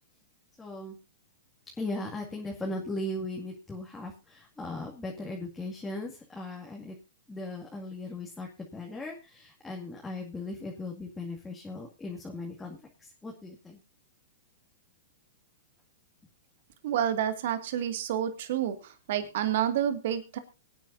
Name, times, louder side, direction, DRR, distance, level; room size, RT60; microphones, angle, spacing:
voice 1, 0.6-1.0 1.7-7.0 7.3-13.8, left 2 dB, 10° left, -2 dB, 2.2 m, -38 dB
voice 2, 16.8-18.8 19.1-20.4, right 10 dB, 60° right, 9 dB, 2.0 m, -29 dB
23.5 x 9.2 x 2.7 m, 0.28 s
hypercardioid pair, 125°, 0 cm